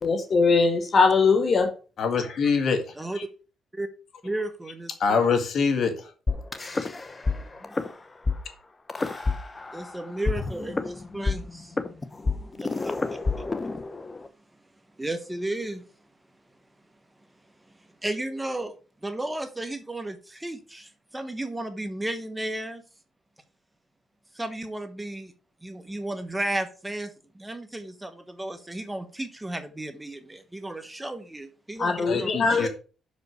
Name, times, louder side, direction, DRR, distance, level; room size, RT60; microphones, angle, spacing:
voice 1, 0.0-1.7 31.8-32.7, left 4 dB, 45° left, 1.2 m, -21 dB
voice 2, 2.0-3.2 5.0-6.1 32.1-32.7, left 5 dB, 60° left, 1.9 m, -25 dB
voice 3, 4.2-5.2 7.2-7.7 9.7-11.8 12.6-13.4 15.0-15.8 18.0-18.7 19.0-22.8 24.3-25.3 25.6-32.3 32.6-32.7, right 1 dB, 10° right, 1.2 m, -34 dB
sound 1, 6.3-7.4 7.6-7.9 8.3-8.4 8.9-9.9 10.3-14.3, left 3 dB, 25° left, 1.0 m, -28 dB
6.1 x 5.3 x 6.4 m
cardioid pair, 90°, 0 cm